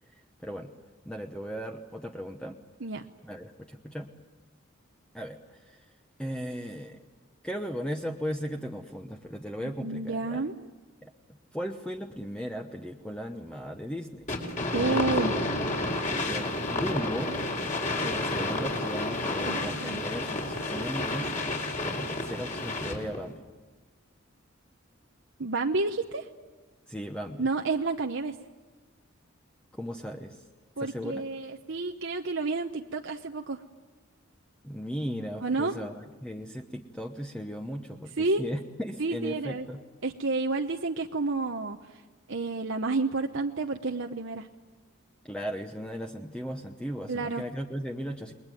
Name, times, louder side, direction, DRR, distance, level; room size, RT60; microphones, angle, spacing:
voice 1, 1.0-2.6 3.2-4.1 5.1-5.9 6.2-7.0 7.4-10.4 11.0-11.1 11.5-14.2 14.7-15.5 16.2-17.3 18.0-21.3 21.7-23.4 26.9-27.5 29.7-30.4 30.8-31.2 34.6-39.8 45.3-48.3, equal, 5° left, 3 dB, 1.0 m, -37 dB
voice 2, 9.8-10.5 14.7-15.4 19.5-20.0 25.4-26.3 27.4-28.3 30.8-33.6 35.4-35.8 38.2-38.4 39.0-39.7 40.0-42.0 42.3-44.5 47.1-47.4, right 3 dB, 60° right, 3 dB, 0.9 m, -30 dB
sound 1, 14.3-23.2, left 2 dB, 35° left, 4.3 m, -30 dB
29.0 x 21.5 x 9.3 m, 1.3 s
head